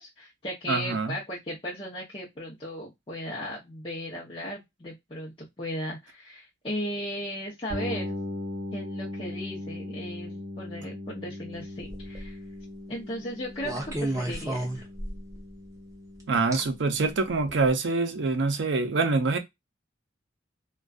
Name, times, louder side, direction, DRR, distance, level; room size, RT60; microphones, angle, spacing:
voice 1, 0.0-8.2 8.7-12.4 12.9-13.7 14.0-14.8, equal, 25° left, 0.6 m, -36 dB
voice 2, 0.7-1.2 16.3-19.4, right 3 dB, 70° right, 0.5 m, -25 dB
sound 1, 7.7-17.4, left 1 dB, 35° right, 1.0 m, -39 dB
sound 2, 11.8-12.3 13.6-15.4 16.5-16.6 17.5-17.6, right 1 dB, 15° right, 0.5 m, -32 dB
2.5 x 2.2 x 2.3 m
head